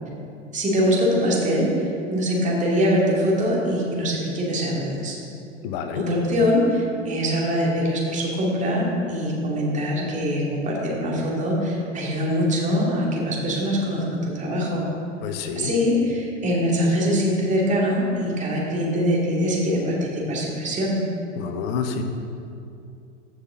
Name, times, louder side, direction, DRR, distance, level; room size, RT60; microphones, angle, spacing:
voice 1, 0.5-5.2 5.9-14.8 15.5-21.0, equal, 20° right, -3 dB, 2.5 m, -23 dB
voice 2, 5.6-6.0 15.2-15.7 21.4-22.0, left 6 dB, 50° left, 7 dB, 1.1 m, -28 dB
15.0 x 5.9 x 3.8 m, 2.6 s
hypercardioid pair, 100°, 38 cm